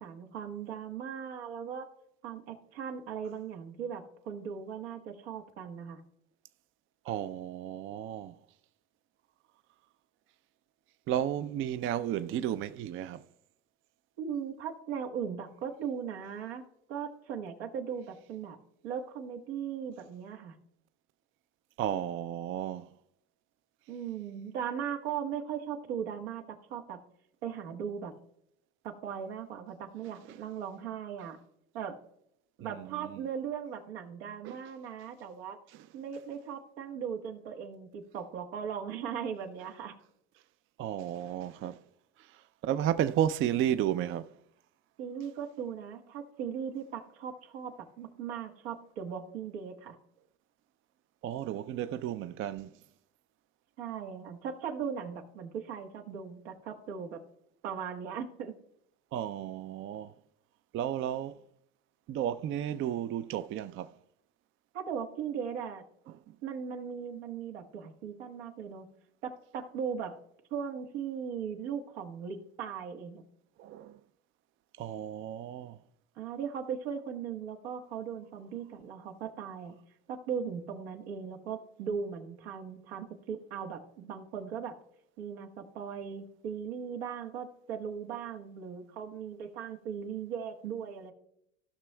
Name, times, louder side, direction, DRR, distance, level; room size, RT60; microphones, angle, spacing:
voice 1, 0.0-1.9 2.2-6.0 14.2-18.6 18.8-20.6 23.9-27.0 27.4-28.1 28.8-31.4 31.7-32.0 32.6-35.6 35.9-39.9 45.0-50.0 53.8-57.2 57.6-58.5 64.7-65.8 66.4-68.9 69.2-70.2 70.5-73.2 76.2-79.7 80.1-84.8 85.2-91.1, right 7 dB, 85° right, 1.3 m, -38 dB
voice 2, 7.0-8.4 11.1-13.2 21.8-22.9 32.7-33.2 34.4-34.6 35.7-35.8 40.8-41.8 42.2-44.3 51.2-52.7 59.1-60.1 60.7-61.4 62.1-63.9 66.3-66.4 73.6-74.0 74.8-75.8, right 11 dB, 40° right, 0.4 m, -33 dB
16.0 x 6.0 x 2.2 m
supercardioid pair, 95°, 32 cm